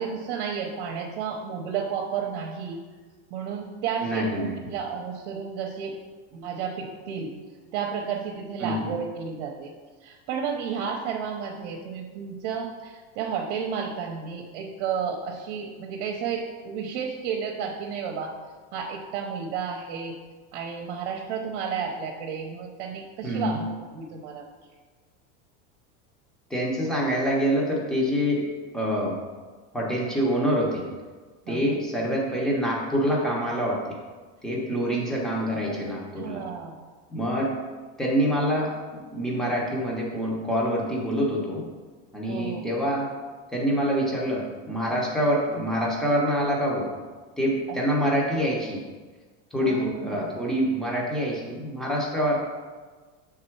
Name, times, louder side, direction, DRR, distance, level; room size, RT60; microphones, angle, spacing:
voice 1, 0.0-2.8 3.3-6.0 6.3-7.3 7.7-9.7 10.0-18.3 18.7-20.1 20.5-24.4 31.5-31.7 35.7-35.8 36.2-36.8 42.3-42.9 47.7-47.8 49.6-50.4, right 6 dB, 65° right, 1 dB, 0.9 m, -32 dB
voice 2, 4.0-4.6 8.6-8.9 23.2-23.6 26.5-28.4 28.7-29.2 29.7-30.9 31.5-34.0 34.4-36.4 37.1-37.6 38.0-41.7 42.1-43.1 43.5-46.9 47.4-48.8 49.5-52.4, equal, ahead, -4 dB, 0.8 m, -26 dB
6.7 x 3.7 x 4.5 m, 1.4 s
cardioid pair, 165°, 34 cm